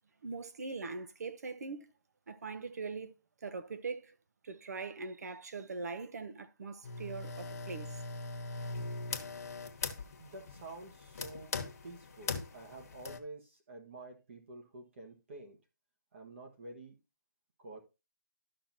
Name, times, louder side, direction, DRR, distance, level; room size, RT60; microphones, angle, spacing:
voice 1, 0.2-1.9 2.3-3.1 3.4-4.1 4.4-8.0, right 4 dB, 55° right, 1.0 m, -41 dB
sound 1, 6.8-13.2, left 3 dB, 50° left, 1.2 m, -41 dB
voice 2, 10.2-11.5 11.8-15.6 16.1-16.9 17.6-17.8, right 2 dB, 40° right, 1.5 m, -49 dB
12.5 x 6.0 x 2.8 m
hypercardioid pair, 165°, 11 cm